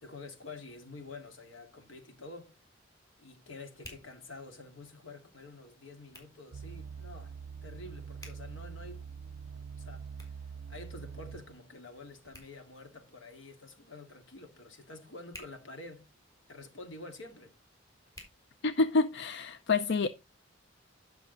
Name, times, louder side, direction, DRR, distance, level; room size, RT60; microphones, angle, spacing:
voice 1, 0.0-2.6 3.2-7.3 7.6-9.0 9.8-10.1 10.7-16.1 16.5-17.5, left 3 dB, 85° left, 2.2 m, -48 dB
Hands, 1.6-19.2, left 1 dB, 20° left, 4.0 m, -59 dB
sound 1, 6.5-11.6 12.3-12.4, right 6 dB, 80° right, 0.5 m, -44 dB
voice 2, 18.6-20.1, left 3 dB, 65° left, 0.6 m, -27 dB
11.0 x 6.2 x 4.0 m
head